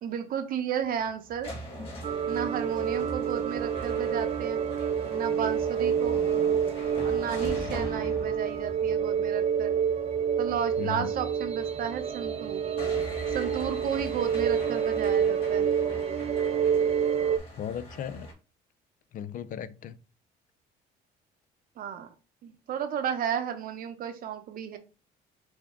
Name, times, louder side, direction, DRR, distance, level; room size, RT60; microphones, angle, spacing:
voice 1, 0.0-1.5 2.3-4.6 5.1-6.2 7.0-9.8 10.4-12.7 13.3-15.7 21.8-22.1 22.4-24.8, right 8 dB, 60° right, 0.8 m, -33 dB
sound 1, 0.8-18.3, right 1 dB, 35° left, 1.9 m, -42 dB
sound 2, 2.0-17.4, right 7 dB, 40° right, 0.5 m, -28 dB
voice 2, 10.8-11.1 17.6-18.3 19.1-20.0, left 9 dB, 55° left, 0.5 m, -36 dB
6.1 x 2.3 x 3.7 m
cardioid pair, 110°, 17 cm